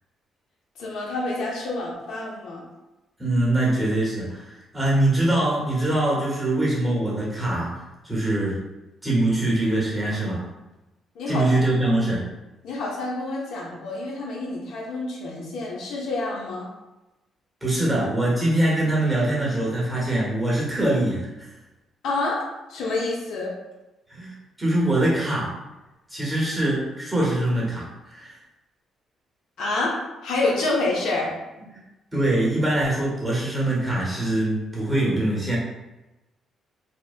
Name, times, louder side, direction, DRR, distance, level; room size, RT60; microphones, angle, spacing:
voice 1, 0.8-2.6 11.2-11.5 12.6-16.7 22.0-22.4 22.7-23.5 29.6-31.3, left 2 dB, 80° left, -3 dB, 0.6 m, -28 dB
voice 2, 3.2-7.7 8.0-8.6 9.0-10.4 11.3-12.2 17.6-21.5 24.1-25.5 26.1-28.4 31.6-31.7 32.1-35.6, right 1 dB, 5° right, -5 dB, 1.0 m, -23 dB
2.7 x 2.1 x 2.4 m, 1.0 s
cardioid pair, 90°, 0 cm